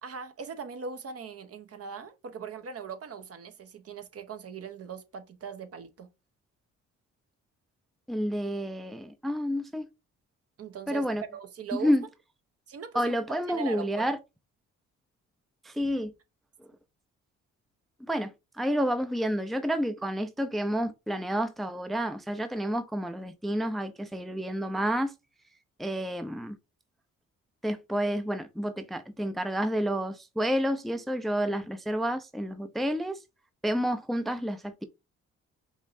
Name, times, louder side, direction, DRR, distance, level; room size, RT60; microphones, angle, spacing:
voice 1, 0.0-6.1 10.6-11.9 12.7-13.1 13.5-14.1, right 6 dB, 50° right, 1.0 m, -40 dB
voice 2, 8.1-9.9 10.9-11.2 11.7-12.0 12.9-14.2 15.6-16.1 16.6-16.7 18.1-25.1 25.8-26.6 27.6-33.2 33.6-34.8, equal, ahead, 0.5 m, -29 dB
5.4 x 3.1 x 2.6 m
cardioid pair, 90°, 30 cm